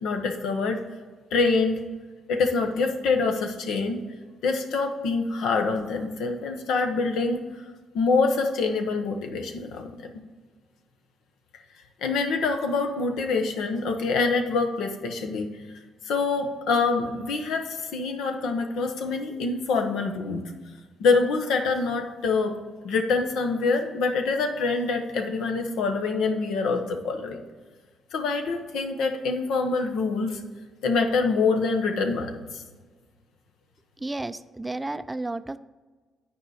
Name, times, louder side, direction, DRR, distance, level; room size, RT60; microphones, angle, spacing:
voice 1, 0.0-0.8 1.3-1.8 2.3-4.0 4.4-7.4 7.9-9.9 12.0-15.5 16.0-20.4 21.0-22.6 22.8-27.4 28.1-30.4 30.8-32.4, left 4 dB, 85° left, 5 dB, 1.1 m, -25 dB
voice 2, 34.0-35.6, right 2 dB, 15° right, 13 dB, 0.3 m, -32 dB
9.4 x 4.8 x 4.9 m, 1.4 s
cardioid pair, 90°, 0 cm